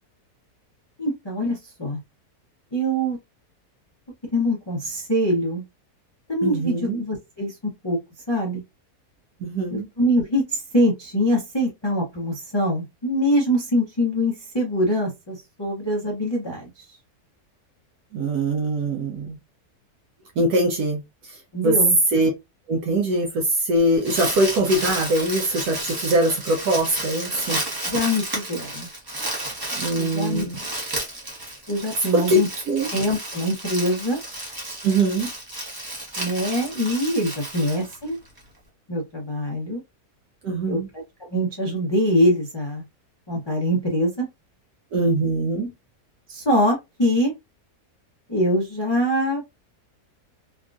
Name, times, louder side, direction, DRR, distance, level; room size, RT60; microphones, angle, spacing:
voice 1, 1.0-2.0 2.7-3.2 4.3-5.6 6.3-7.5 7.8-8.0 8.3-8.6 9.7-16.7 21.5-22.0 27.8-28.9 30.0-30.5 31.7-32.5 32.9-34.2 36.2-38.2 38.9-39.8 40.6-40.8 41.3-42.8 43.3-44.3 46.3-47.3 48.3-49.4, equal, 30° left, 0.5 m, -23 dB
voice 2, 6.4-7.0 9.4-9.9 18.1-19.4 20.4-21.8 22.1-22.3 22.7-27.6 29.7-30.6 32.1-32.4 32.7-32.9 34.8-35.3 40.4-40.9 44.9-45.7, right 1 dB, 75° right, 1.1 m, -22 dB
Crumpling crinkling, 23.9-38.4, right 1 dB, 20° right, 0.7 m, -32 dB
3.5 x 2.3 x 2.4 m
omnidirectional pair, 1.7 m